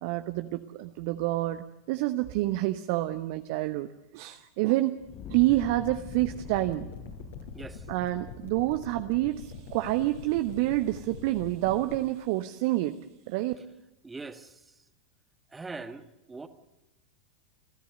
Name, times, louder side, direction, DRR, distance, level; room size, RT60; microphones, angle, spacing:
voice 1, 0.0-5.0 5.3-6.9 7.9-13.0 13.3-13.5, right 17 dB, 45° right, 9 dB, 0.8 m, -28 dB
Fire, 5.0-10.2, left 10 dB, 35° left, 0.9 m, -45 dB
sound 1, 6.0-12.0, left 5 dB, 60° left, 4.6 m, -43 dB
voice 2, 14.0-14.6 15.5-16.0 16.3-16.5, right 3 dB, 10° right, 9 dB, 1.5 m, -41 dB
29.5 x 14.5 x 7.9 m, 0.96 s
figure-of-eight pair, 90°, 0 cm